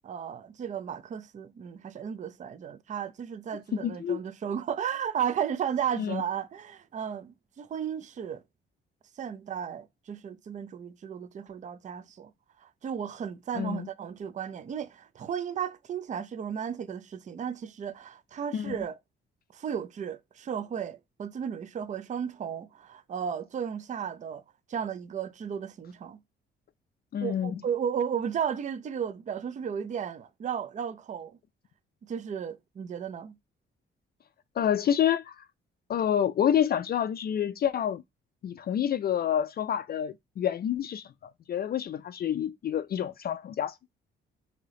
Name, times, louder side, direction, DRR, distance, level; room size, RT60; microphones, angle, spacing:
voice 1, 0.0-8.4 9.2-12.3 12.6-19.0 19.5-24.4 24.7-26.2 27.2-31.4 32.0-33.4, right 8 dB, 35° right, 0.4 m, -34 dB
voice 2, 3.7-4.2 6.0-6.2 13.6-13.9 18.5-18.8 27.1-27.6 34.6-35.4 35.9-38.0 38.4-41.1 41.5-43.7, left 9 dB, 50° left, 0.4 m, -28 dB
3.3 x 2.8 x 3.7 m
cardioid pair, 80°, 21 cm